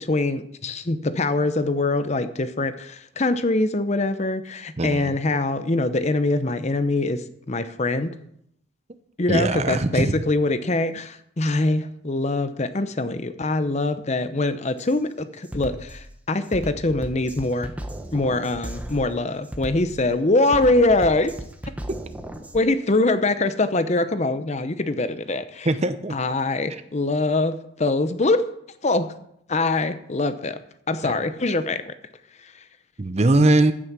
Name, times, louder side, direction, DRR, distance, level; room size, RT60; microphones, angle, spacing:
voice 1, 0.0-8.1 9.2-17.7 18.1-21.3 22.5-25.7 26.1-28.4 28.8-29.1 29.5-30.6 30.9-31.9 32.4-32.5, left 2 dB, 35° left, 11 dB, 0.7 m, -23 dB
voice 2, 4.8-5.1 9.3-10.3 25.7-26.2 31.0-31.1 33.0-33.7, right 2 dB, 35° right, 12 dB, 0.6 m, -20 dB
Drum kit, 14.8-15.0 15.4-22.6, right 1 dB, 5° right, 0.9 m, -36 dB
15.5 x 6.3 x 6.1 m, 0.74 s
head